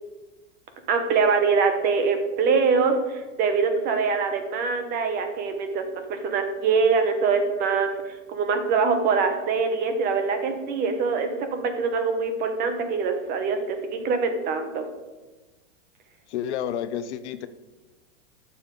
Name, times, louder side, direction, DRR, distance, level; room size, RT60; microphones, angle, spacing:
voice 1, 0.9-14.8, right 5 dB, 25° right, 7 dB, 0.9 m, -24 dB
voice 2, 16.3-17.5, left 9 dB, 65° left, 12 dB, 0.7 m, -30 dB
12.0 x 7.0 x 3.8 m, 1.2 s
supercardioid pair, 160°, 37 cm